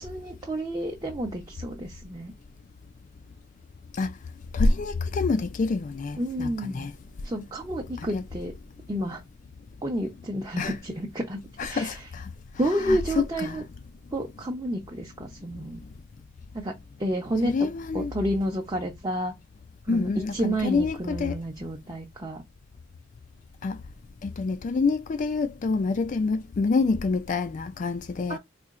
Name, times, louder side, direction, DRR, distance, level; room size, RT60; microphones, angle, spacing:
voice 1, 0.0-2.3 6.2-6.9 7.2-8.5 8.9-9.2 9.8-12.0 12.6-13.6 14.1-15.8 16.5-17.5 17.9-19.3 19.8-22.4 28.3-28.4, right 1 dB, 20° right, 0.7 m, -30 dB
voice 2, 4.5-7.0 8.0-8.2 10.6-10.8 11.6-12.3 12.6-13.6 17.4-18.1 19.9-21.4 23.6-23.8 24.2-28.4, left 4 dB, 40° left, 0.3 m, -27 dB
4.2 x 2.7 x 2.4 m
head